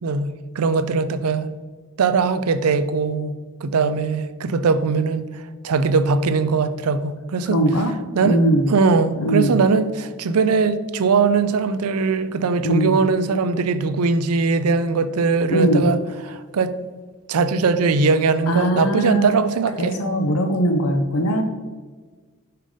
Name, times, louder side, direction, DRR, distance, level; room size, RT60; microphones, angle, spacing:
voice 1, 0.0-1.5 2.0-3.3 3.6-5.3 5.6-7.6 8.1-8.4 8.7-16.0 16.3-16.7 17.3-20.0, right 4 dB, 85° right, 0.5 m, -20 dB
voice 2, 7.5-7.9 8.2-8.7 9.2-9.6 12.6-13.0 15.5-15.9 18.5-19.4 19.8-21.4, right 1 dB, 80° left, 0.8 m, -20 dB
5.8 x 5.0 x 5.1 m
head